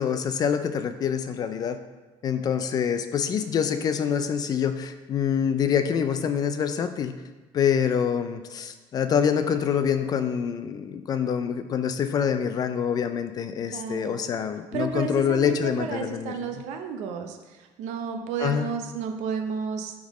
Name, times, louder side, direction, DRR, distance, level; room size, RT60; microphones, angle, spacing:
voice 1, 0.0-1.8 2.2-7.2 7.5-16.6 18.4-18.7, left 7 dB, 35° left, 9 dB, 0.3 m, -26 dB
voice 2, 13.7-14.2 14.7-17.4 17.8-19.9, right 6 dB, 85° right, 5 dB, 0.7 m, -32 dB
10.0 x 3.6 x 3.1 m, 1.2 s
cardioid pair, 170°, 12 cm